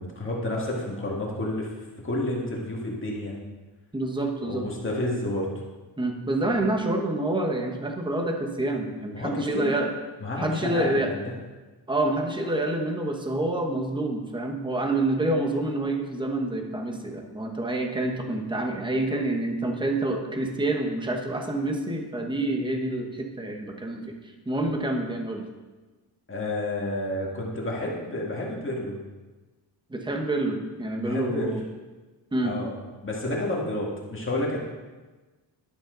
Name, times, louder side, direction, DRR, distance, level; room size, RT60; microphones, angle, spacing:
voice 1, 0.0-1.7 2.0-3.4 4.4-5.5 9.1-9.8 10.2-11.2 26.3-29.0 31.0-31.5 32.4-34.6, left 1 dB, 25° left, -3 dB, 2.0 m, -30 dB
voice 2, 3.9-4.7 6.0-9.9 10.4-11.1 11.9-24.1 24.5-25.5 29.9-31.6 32.3-32.5, right 2 dB, 10° right, 2 dB, 1.1 m, -27 dB
12.0 x 11.5 x 3.9 m, 1.2 s
wide cardioid pair, 180°, 45 cm